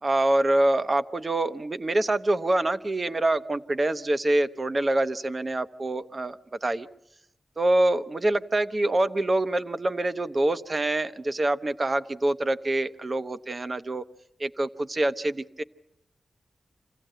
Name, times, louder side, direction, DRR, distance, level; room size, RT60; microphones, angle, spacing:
voice 1, 0.0-6.9 7.6-14.0 14.4-15.6, right 1 dB, 35° right, 11 dB, 0.9 m, -25 dB
26.5 x 16.0 x 9.0 m, 0.85 s
wide cardioid pair, 90°, 0 cm